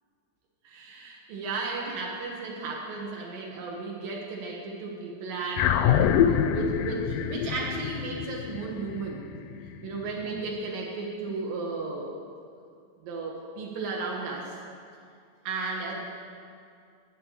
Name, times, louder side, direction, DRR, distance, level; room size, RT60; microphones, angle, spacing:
voice 1, 0.6-9.2 9.8-12.2 13.0-14.6 15.4-16.0, right 3 dB, 80° right, -1 dB, 2.8 m, -34 dB
sound 1, 5.6-10.2, left 9 dB, 80° left, 2.0 m, -26 dB
8.6 x 8.5 x 7.1 m, 2.4 s
omnidirectional pair, 3.9 m